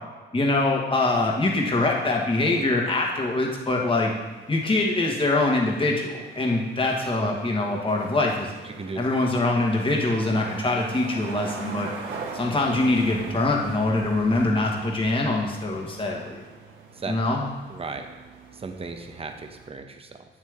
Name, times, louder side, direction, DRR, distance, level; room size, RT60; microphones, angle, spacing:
voice 1, 0.3-4.1 4.5-8.5 9.0-11.9 12.3-16.4 17.1-17.5, left 2 dB, 25° left, 0 dB, 1.7 m, -24 dB
sound 1, 1.3-19.7, right 4 dB, 80° right, 1.6 m, -42 dB
voice 2, 8.6-9.0 12.2-12.3 16.9-17.1 17.7-18.1 18.5-20.2, right 4 dB, 30° right, 6 dB, 0.9 m, -36 dB
8.2 x 7.4 x 3.6 m, 1.3 s
cardioid pair, 90°, 20 cm